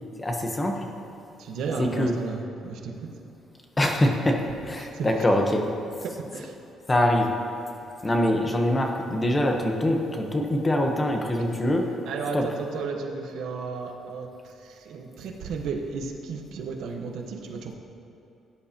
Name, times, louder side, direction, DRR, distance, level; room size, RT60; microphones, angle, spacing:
voice 1, 0.2-0.9 1.8-2.1 3.8-5.7 6.9-7.3 8.0-11.9 12.3-12.5, left 1 dB, 15° left, 2 dB, 1.0 m, -24 dB
voice 2, 1.4-3.1 4.9-5.1 6.3-6.5 12.0-17.7, right 4 dB, 70° right, 2 dB, 1.2 m, -34 dB
17.0 x 9.9 x 2.9 m, 2.9 s
cardioid pair, 155°, 0 cm